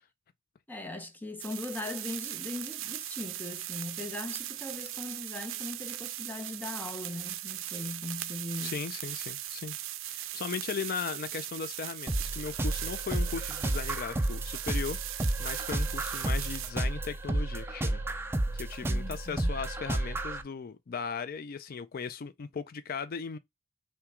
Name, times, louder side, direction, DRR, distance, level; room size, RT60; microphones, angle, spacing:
voice 1, 0.7-8.8 18.8-19.5, left 2 dB, 10° left, 0.8 m, -39 dB
sound 1, 1.4-16.7, right 14 dB, 70° right, 0.5 m, -39 dB
voice 2, 8.6-9.8 10.1-18.0 18.5-23.4, left 6 dB, 50° left, 0.4 m, -37 dB
sound 2, 12.1-20.4, right 1 dB, 10° right, 0.5 m, -32 dB
5.8 x 2.3 x 3.6 m
head